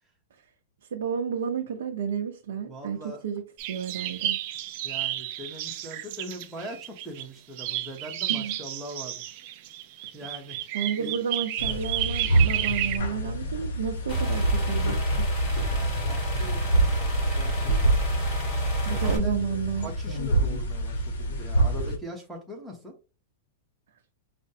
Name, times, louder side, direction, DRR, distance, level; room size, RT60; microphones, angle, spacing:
voice 1, 0.9-3.4 3.7-4.4 8.3-8.6 10.7-15.3 18.8-19.9, right 7 dB, 85° right, 0.7 m, -31 dB
voice 2, 2.7-3.2 4.8-9.4 10.0-10.6 11.0-11.1 15.7-16.7 16.9-18.0 18.9-19.4 19.8-23.0, right 1 dB, 5° right, 0.8 m, -41 dB
sound 1, 3.6-7.2 7.6-13.0, right 13 dB, 35° right, 0.4 m, -32 dB
sound 2, 11.6-22.0, right 1 dB, 65° left, 0.9 m, -27 dB
sound 3, 14.1-19.2, right 1 dB, 30° left, 1.0 m, -28 dB
5.1 x 2.1 x 2.7 m
supercardioid pair, 180°, 0 cm